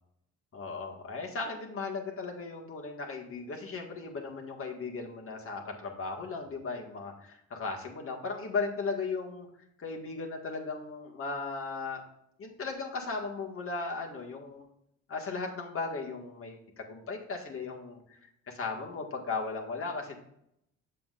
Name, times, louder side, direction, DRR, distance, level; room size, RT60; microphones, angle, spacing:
voice 1, 0.5-9.5 9.8-12.0 12.4-14.7 15.1-18.2 18.5-20.2, left 4 dB, 45° left, 0 dB, 1.8 m, -36 dB
7.7 x 7.4 x 2.5 m, 0.76 s
cardioid pair, 90°, 30 cm